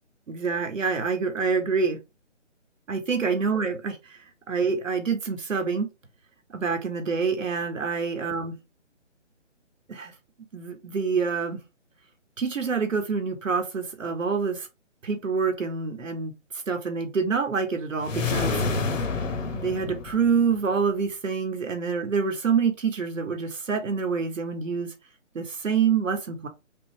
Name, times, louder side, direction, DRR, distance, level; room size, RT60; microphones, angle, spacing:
voice 1, 0.3-2.0 2.9-4.0 4.5-5.9 6.5-8.5 9.9-10.1 10.5-11.6 12.4-14.7 15.0-16.3 16.7-18.6 19.5-24.9 25.3-26.5, right 5 dB, 85° right, 1.3 m, -26 dB
sound 1, 18.0-20.6, left 4 dB, 85° left, 1.1 m, -28 dB
5.2 x 2.0 x 3.2 m
hypercardioid pair, 165°, 37 cm